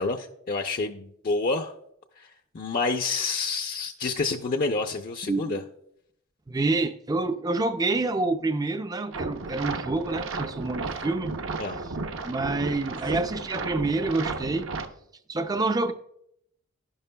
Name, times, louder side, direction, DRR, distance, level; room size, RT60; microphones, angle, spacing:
voice 1, 0.0-1.7 2.2-2.3 2.5-5.6 11.6-11.8, left 3 dB, 45° left, 0.5 m, -28 dB
voice 2, 5.2-5.6 6.5-11.3 12.2-14.7 15.3-15.9, right 3 dB, 20° right, 0.4 m, -27 dB
sound 1, 9.1-14.9, right 3 dB, 70° right, 0.8 m, -34 dB
11.0 x 11.0 x 2.2 m
head